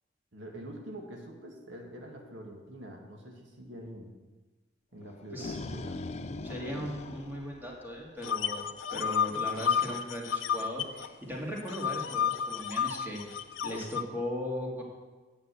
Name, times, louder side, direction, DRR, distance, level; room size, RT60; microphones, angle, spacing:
voice 1, 0.3-4.1 4.9-6.0, right 1 dB, 75° right, 1 dB, 2.0 m, -45 dB
sound 1, 5.1-8.3, left 2 dB, 35° left, 0.5 m, -40 dB
voice 2, 6.4-14.8, equal, 10° right, -3 dB, 2.6 m, -38 dB
sound 2, 8.2-11.1 11.3-14.0, left 8 dB, 75° left, 0.7 m, -31 dB
8.9 x 6.9 x 8.3 m, 1.3 s
head